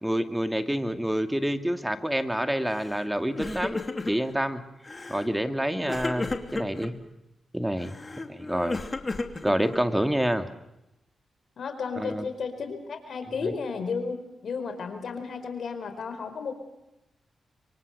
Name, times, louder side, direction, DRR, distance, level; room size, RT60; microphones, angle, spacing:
voice 1, 0.0-3.8 4.1-4.6 5.1-6.9 7.5-8.0 8.3-8.8 9.4-10.5 12.0-12.2, equal, 10° right, 8 dB, 2.3 m, -27 dB
Crying sobbing, 2.7-3.0 3.3-4.3 4.8-5.3 5.9-6.9 7.8-10.0, left 3 dB, 35° left, 2.9 m, -34 dB
voice 2, 11.6-14.1 14.4-16.5, left 5 dB, 70° left, 8 dB, 4.5 m, -33 dB
25.5 x 24.0 x 6.7 m, 0.91 s
cardioid pair, 55°, 0 cm